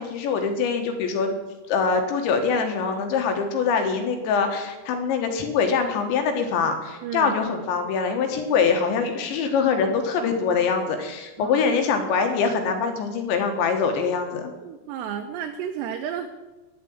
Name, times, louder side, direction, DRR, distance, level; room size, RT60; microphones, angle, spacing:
voice 1, 0.0-1.4 1.7-14.4, left 5 dB, 80° left, 5 dB, 3.5 m, -24 dB
voice 2, 7.0-7.3 11.4-11.6 14.6-16.3, right 8 dB, 80° right, 5 dB, 2.6 m, -32 dB
10.5 x 7.5 x 9.4 m, 1.1 s
omnidirectional pair, 5.4 m